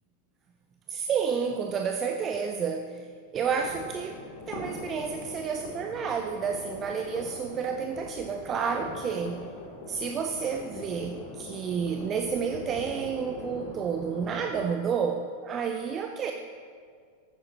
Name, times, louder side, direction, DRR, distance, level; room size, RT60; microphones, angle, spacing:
voice 1, 0.9-3.1 3.3-4.2 4.5-9.4 9.9-16.3, right 6 dB, 25° right, 5 dB, 0.7 m, -30 dB
sound 1, 3.4-14.7, left 2 dB, 50° left, 2.9 m, -42 dB
18.0 x 13.5 x 3.0 m, 2.1 s
figure-of-eight pair, 90°, 0 cm